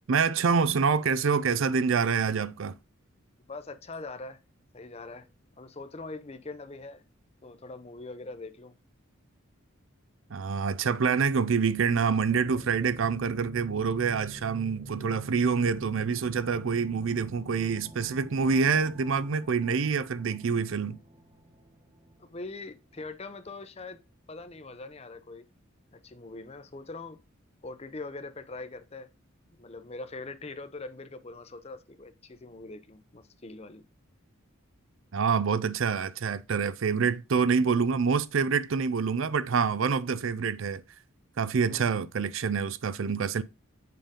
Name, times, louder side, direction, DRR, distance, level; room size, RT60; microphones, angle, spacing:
voice 1, 0.1-2.7 10.3-21.0 35.1-40.8 41.4-43.4, right 5 dB, 65° right, 0.5 m, -26 dB
voice 2, 3.5-4.4 4.7-5.3 5.6-7.0 7.4-8.8 22.2-24.0 24.3-25.5 25.9-27.2 27.6-29.1 29.6-33.8 41.6-41.9, left 3 dB, 30° left, 0.6 m, -42 dB
sound 1, 11.6-24.3, right 1 dB, 30° right, 1.0 m, -48 dB
7.7 x 5.1 x 3.6 m
head